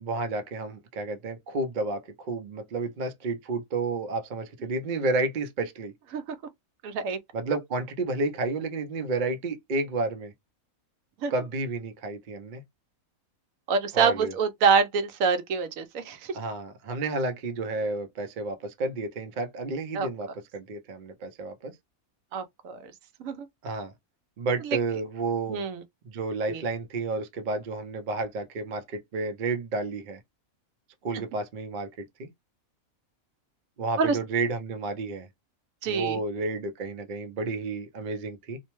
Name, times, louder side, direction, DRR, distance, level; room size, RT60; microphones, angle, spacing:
voice 1, 0.0-5.9 7.3-10.3 11.3-12.6 13.9-14.3 16.3-21.7 23.6-23.9 24.4-25.6 26.0-30.2 31.0-32.3 33.8-35.3 35.9-38.6, right 3 dB, 55° right, 0.5 m, -31 dB
voice 2, 6.8-7.2 11.2-11.3 13.7-16.2 19.9-20.1 22.3-22.8 23.2-23.3 25.5-25.8 26.5-26.6 34.0-34.2 35.8-36.2, right 5 dB, 75° right, 1.0 m, -25 dB
2.6 x 2.1 x 2.9 m
omnidirectional pair, 1.5 m